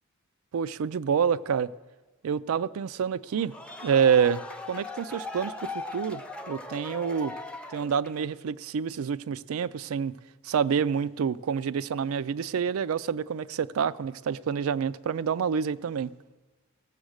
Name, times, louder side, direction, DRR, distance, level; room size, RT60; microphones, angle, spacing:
voice 1, 0.5-1.7 2.2-3.5 3.8-4.4 4.7-7.3 7.7-10.1 10.4-16.1, right 7 dB, 80° right, 0.4 m, -27 dB
sound 1, 3.3-8.3, left 3 dB, 5° left, 0.5 m, -39 dB
17.5 x 7.1 x 6.4 m
head